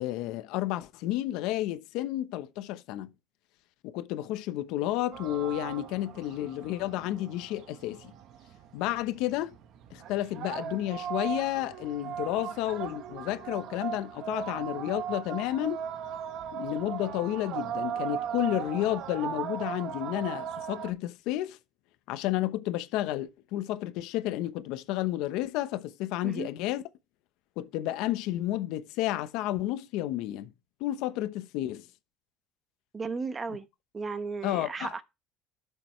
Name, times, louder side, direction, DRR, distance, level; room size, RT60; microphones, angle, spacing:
voice 1, 0.0-3.1 3.8-8.1 8.7-9.5 9.9-15.8 16.5-21.6 22.1-26.8 27.6-30.5 30.8-31.9 34.4-34.9, left 14 dB, 75° left, 0.9 m, -31 dB
sound 1, 5.1-20.9, right 9 dB, 60° right, 1.1 m, -38 dB
voice 2, 32.9-33.7 33.9-35.0, right 4 dB, 25° right, 1.0 m, -35 dB
11.5 x 6.9 x 3.2 m
cardioid pair, 120°, 0 cm